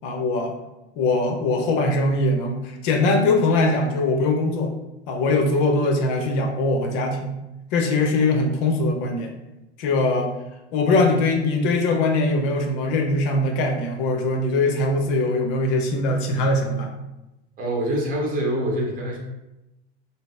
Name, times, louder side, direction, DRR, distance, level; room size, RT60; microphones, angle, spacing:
voice 1, 0.0-0.6 1.0-4.7 5.1-7.3 7.7-9.3 9.8-10.4 10.7-16.9, left 2 dB, 50° left, 3 dB, 0.7 m, -21 dB
voice 2, 17.6-19.2, right 1 dB, 25° right, -1 dB, 1.0 m, -25 dB
3.8 x 2.0 x 3.6 m, 0.95 s
figure-of-eight pair, 85°, 35 cm